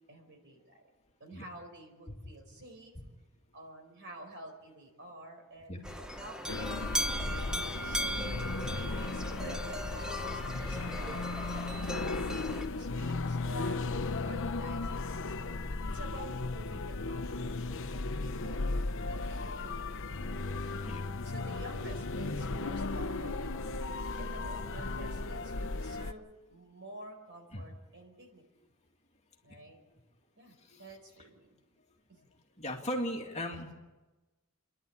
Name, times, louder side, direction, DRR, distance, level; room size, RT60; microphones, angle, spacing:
voice 1, 0.1-0.9 1.2-2.9 3.5-8.2 8.6-11.3 11.5-11.8 12.3-13.8 14.2-18.6 19.0-20.7 21.2-23.7 24.1-28.4 29.4-29.8 30.4-31.6 32.1-32.2, right 2 dB, 55° right, 4 dB, 4.8 m, -50 dB
sound 1, 5.8-12.7, equal, 5° right, 1.1 m, -38 dB
sound 2, 6.5-26.1, left 3 dB, 60° left, 0.9 m, -36 dB
voice 2, 30.5-30.8 32.6-33.7, equal, 30° left, 1 dB, 2.3 m, -39 dB
29.5 x 11.0 x 8.7 m, 1.1 s
head